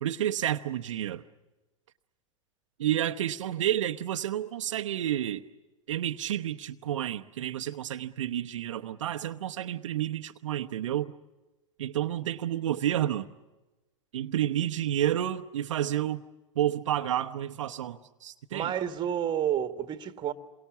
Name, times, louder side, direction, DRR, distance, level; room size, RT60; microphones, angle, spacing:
voice 1, 0.0-1.2 2.8-5.4 5.9-11.1 11.8-13.3 14.1-16.2 16.6-18.7, right 11 dB, 70° right, 0.9 m, -30 dB
voice 2, 18.5-20.3, right 10 dB, 25° right, 1.5 m, -30 dB
28.0 x 23.0 x 7.3 m
hypercardioid pair, 100°, 17 cm